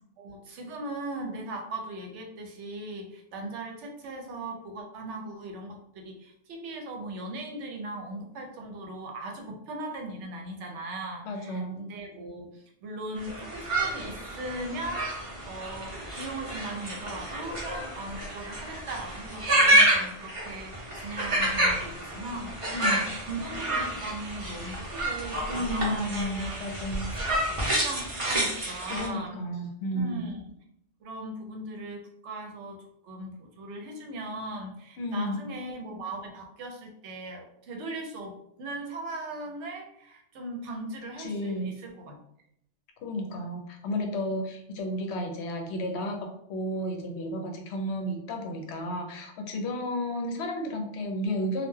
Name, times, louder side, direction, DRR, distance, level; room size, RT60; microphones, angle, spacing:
voice 1, 0.2-26.6 27.1-29.4 29.9-30.4 31.0-42.2, right 2 dB, 75° right, 2 dB, 0.9 m, -39 dB
voice 2, 11.2-11.8 22.7-23.1 25.5-27.1 28.8-30.2 35.0-35.4 41.2-41.7 43.0-51.7, left 1 dB, 70° left, 3 dB, 0.8 m, -32 dB
sound 1, 13.2-29.1, right 1 dB, 35° right, 0.6 m, -29 dB
2.3 x 2.2 x 3.1 m, 0.73 s
omnidirectional pair, 1.2 m